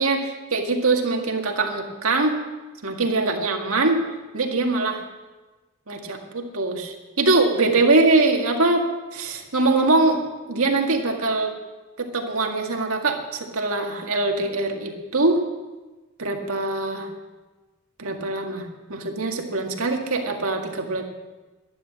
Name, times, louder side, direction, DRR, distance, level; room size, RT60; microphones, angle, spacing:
voice 1, 0.0-2.3 2.8-4.0 4.3-5.0 5.9-8.8 9.1-10.2 10.5-11.5 12.0-15.4 16.2-17.1 18.0-21.0, right 3 dB, 75° right, 2 dB, 1.9 m, -22 dB
12.0 x 11.0 x 7.4 m, 1.2 s
head